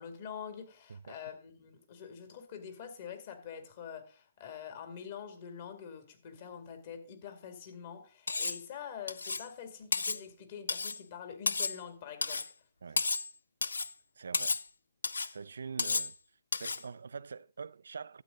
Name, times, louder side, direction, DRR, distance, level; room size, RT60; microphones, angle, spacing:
voice 1, 0.0-12.5, left 7 dB, 50° left, 2.4 m, -45 dB
Cutlery silverware, 8.3-8.6 9.1-9.5 9.9-10.2 10.7-11.0 11.5-11.8 12.2-12.5 13.0-13.3 13.6-13.9 14.3-14.7 15.0-15.3 15.8-16.1 16.5-16.8, left 4 dB, 75° left, 0.4 m, -32 dB
voice 2, 14.2-14.6 15.3-16.1 16.5-18.2, right 5 dB, 70° right, 0.4 m, -44 dB
12.0 x 8.3 x 3.8 m
figure-of-eight pair, 130°, 0 cm